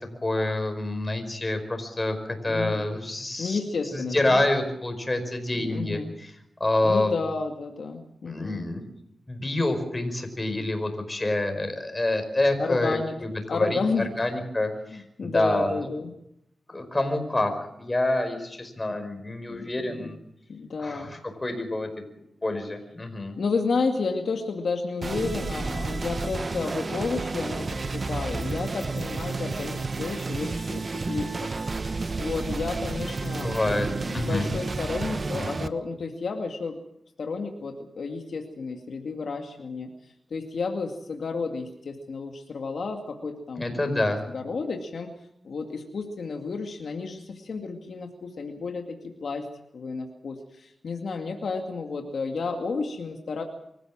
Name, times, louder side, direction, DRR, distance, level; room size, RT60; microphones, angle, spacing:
voice 1, 0.2-3.6 3.9-6.3 6.6-7.1 8.3-8.8 9.3-15.9 16.7-20.2 20.8-21.9 22.4-23.4 33.4-33.9 34.1-34.5 43.6-44.2, left 2 dB, 25° left, 6 dB, 5.2 m, -27 dB
voice 2, 2.5-2.9 3.4-4.4 5.6-6.1 6.8-8.6 12.6-13.1 13.5-14.3 14.9-16.1 19.5-19.6 19.9-20.1 20.5-21.1 23.4-31.5 31.8-33.6 34.0-36.8 37.2-39.9 40.3-44.1 44.3-45.1 45.4-49.5 49.7-53.4, left 4 dB, 75° left, 3 dB, 2.3 m, -31 dB
sound 1, 25.0-35.7, right 3 dB, 45° right, 1.1 m, -31 dB
25.0 x 15.0 x 7.5 m, 0.79 s
cardioid pair, 75°, 0 cm